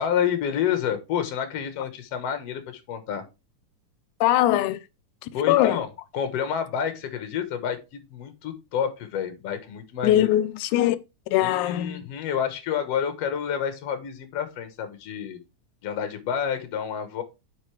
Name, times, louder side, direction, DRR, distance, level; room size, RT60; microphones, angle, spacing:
voice 1, 0.0-3.2 5.3-5.9 6.1-10.3 11.4-15.4 15.8-17.2, left 8 dB, 60° left, 2.1 m, -29 dB
voice 2, 4.2-4.8 5.2-5.8 10.0-11.0 11.3-12.0, left 13 dB, 80° left, 2.0 m, -21 dB
8.2 x 5.3 x 3.2 m
omnidirectional pair, 3.5 m